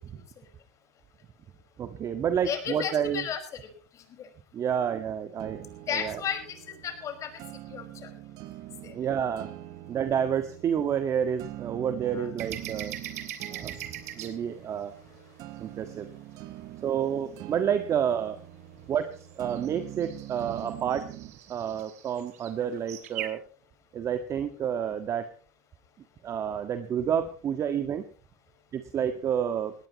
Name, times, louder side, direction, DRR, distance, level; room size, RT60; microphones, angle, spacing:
voice 1, 1.8-3.2 4.5-6.2 8.9-9.5 9.9-13.0 13.5-13.8 14.1-14.9 15.6-16.1 16.8-18.4 18.9-21.1 21.5-23.4 23.9-25.3 26.2-28.0 28.7-29.7, right 8 dB, 40° right, 8 dB, 1.7 m, -29 dB
voice 2, 2.5-3.4 4.2-4.3 5.9-6.6 6.8-7.3 7.7-8.1 8.8-8.9 12.1-12.3, left 8 dB, 40° left, 7 dB, 5.2 m, -33 dB
sound 1, 5.4-21.4, right 14 dB, 55° right, 1.2 m, -44 dB
sound 2, 12.4-14.3 19.3-23.3, right 12 dB, 85° right, 3.0 m, -40 dB
19.0 x 18.0 x 3.1 m, 0.39 s
supercardioid pair, 105°, 8 cm